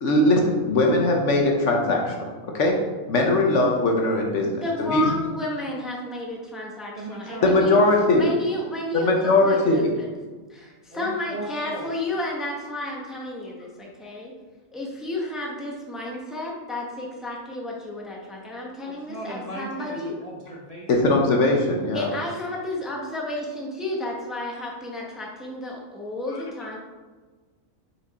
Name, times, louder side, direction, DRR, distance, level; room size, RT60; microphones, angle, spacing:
voice 1, 0.0-2.1 2.5-2.8 3.1-5.0 7.4-8.3 8.9-9.9 20.9-22.1, left 2 dB, 60° left, 0 dB, 1.2 m, -20 dB
voice 2, 4.4-7.8 8.1-10.1 10.5-14.3 14.7-20.1 21.9-26.8, left 2 dB, ahead, -2 dB, 0.8 m, -32 dB
voice 3, 6.9-7.8 10.9-12.0 18.8-21.1, right 1 dB, 35° right, -4 dB, 0.7 m, -37 dB
5.5 x 4.6 x 4.1 m, 1.3 s
omnidirectional pair, 1.5 m